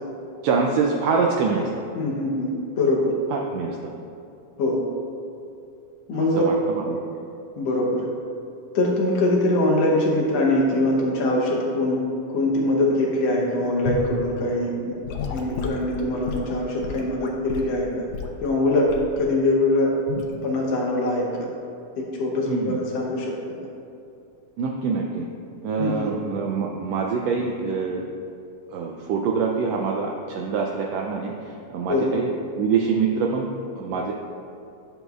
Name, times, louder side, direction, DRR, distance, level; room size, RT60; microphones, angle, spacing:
voice 1, 0.4-1.7 3.3-3.8 6.2-7.0 22.5-22.8 24.6-25.3 25.6-28.1 28.7-31.3 31.7-32.3 32.6-33.5 33.7-34.1, right 5 dB, 85° right, 0 dB, 1.5 m, -25 dB
voice 2, 2.0-3.1 4.6-4.8 6.1-6.6 7.6-8.1 8.8-12.0 12.3-15.0 15.3-18.1 18.4-18.9 19.2-19.9 20.4-21.5 22.0-23.3 25.8-26.1 31.9-32.1, left 2 dB, 70° left, -2 dB, 1.7 m, -23 dB
Gurgling / Sink (filling or washing) / Liquid, 13.9-14.1 15.0-17.7 18.1-18.4 18.9-19.2 20.1-20.3, left 6 dB, 85° left, 2.1 m, -31 dB
10.5 x 7.1 x 2.4 m, 2.6 s
omnidirectional pair, 3.4 m